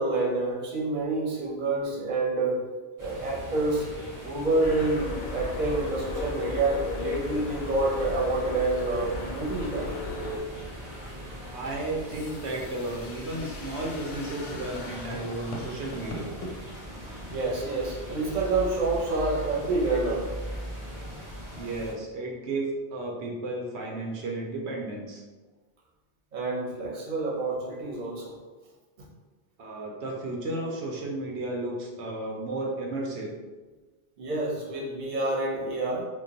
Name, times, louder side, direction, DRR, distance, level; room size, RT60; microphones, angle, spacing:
voice 1, 0.0-2.7 3.0-3.9 4.2-10.1 11.6-11.7 17.3-20.3 26.3-28.4 34.2-36.1, right 2 dB, 45° right, -4 dB, 0.8 m, -28 dB
sound 1, 3.0-21.9, equal, 25° right, 0.4 m, -40 dB
sound 2, 4.6-10.4, left 3 dB, 55° left, 0.6 m, -35 dB
voice 2, 11.5-16.4 21.5-25.2 29.6-33.3, right 2 dB, 85° right, -1 dB, 0.9 m, -33 dB
sound 3, 11.7-16.5, left 1 dB, 85° left, 0.9 m, -42 dB
2.3 x 2.2 x 3.8 m, 1.3 s
omnidirectional pair, 1.1 m